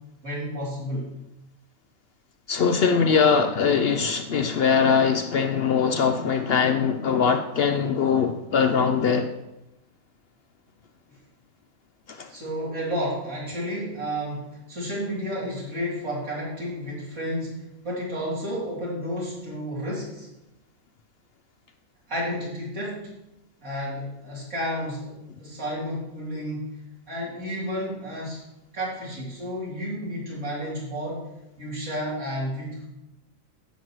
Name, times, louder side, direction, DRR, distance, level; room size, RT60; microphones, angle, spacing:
voice 1, 0.2-1.1 12.3-20.3 22.1-23.1 23.6-26.7 27.1-28.4 28.7-31.3 31.6-32.9, equal, 90° right, 3.5 m, -31 dB
voice 2, 2.5-9.3 12.1-12.3, left 6 dB, 65° left, 0.6 m, -22 dB
10.5 x 7.9 x 3.1 m
omnidirectional pair, 1.4 m